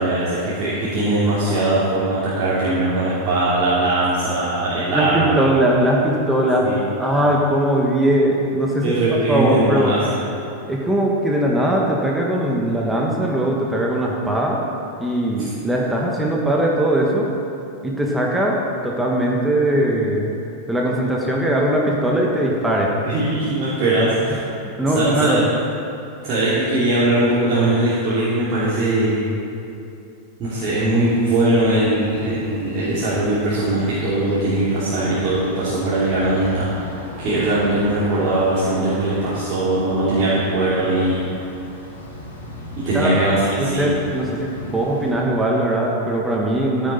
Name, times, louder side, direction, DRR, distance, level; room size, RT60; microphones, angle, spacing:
voice 1, 0.0-5.4 6.6-7.1 8.8-10.2 23.0-24.4 24.9-25.4 26.2-29.2 30.4-41.4 42.8-43.9, right 2 dB, 35° right, -10 dB, 3.0 m, -20 dB
voice 2, 4.9-6.7 7.0-8.9 9.3-9.9 10.7-14.6 15.0-17.3 17.8-18.6 18.8-20.3 20.7-22.9 24.8-25.5 42.9-43.2 43.6-46.9, right 1 dB, 5° right, -2 dB, 1.7 m, -20 dB
sound 1, 30.4-45.1, left 1 dB, 70° left, 3.4 m, -38 dB
15.5 x 9.5 x 4.3 m, 2.8 s
figure-of-eight pair, 90°, 0 cm